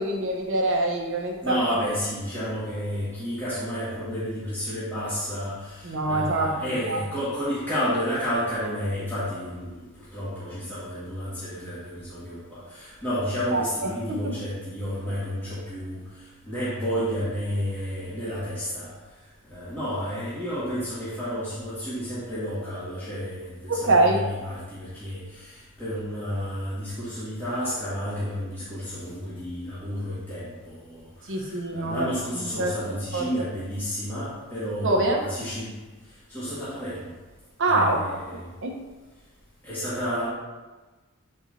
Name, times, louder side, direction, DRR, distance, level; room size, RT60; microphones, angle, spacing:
voice 1, 0.0-1.6 5.8-7.0 13.5-14.3 23.7-24.2 31.3-32.1 32.6-32.8 33.1-33.3 34.8-35.2 37.6-38.0 38.6-38.8, right 2 dB, 60° right, 0 dB, 1.1 m, -24 dB
voice 2, 1.4-18.9 19.4-35.7 36.1-37.1 37.6-38.5 39.6-40.3, equal, 10° left, -13 dB, 1.9 m, -31 dB
8.6 x 4.3 x 2.8 m, 1.2 s
head